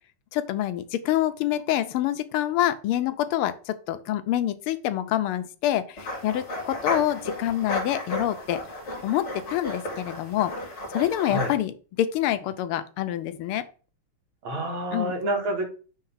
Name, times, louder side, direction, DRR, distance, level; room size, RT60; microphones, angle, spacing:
voice 1, 0.3-8.6 9.0-10.5 10.9-13.6 14.9-15.1, left 12 dB, 85° left, 1.5 m, -26 dB
sound 1, 6.0-11.6, left 2 dB, 35° left, 2.1 m, -33 dB
voice 2, 11.2-11.5 14.4-15.6, right 1 dB, 70° right, 2.4 m, -28 dB
5.6 x 3.3 x 5.6 m
omnidirectional pair, 2.3 m